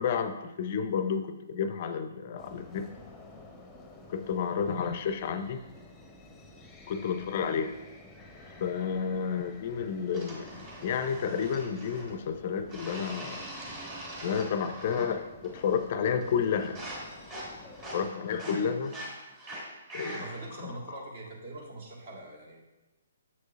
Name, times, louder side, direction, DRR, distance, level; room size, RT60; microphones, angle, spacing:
voice 1, 0.0-2.9 4.1-5.6 6.9-7.7 8.6-13.5 14.2-16.8 17.5-17.6 17.9-18.9 19.9-20.2 20.6-21.0, left 7 dB, 45° left, 10 dB, 0.4 m, -31 dB
sound 1, 2.4-18.1, left 2 dB, 10° left, 0.8 m, -51 dB
sound 2, 10.1-12.2 12.7-15.2 15.4-15.9 16.2-20.5, right 1 dB, 25° right, 2.3 m, -43 dB
voice 2, 17.9-18.2 20.0-22.6, right 2 dB, 50° right, -1 dB, 1.7 m, -44 dB
7.3 x 6.2 x 2.4 m, 1.0 s
figure-of-eight pair, 130°, 0 cm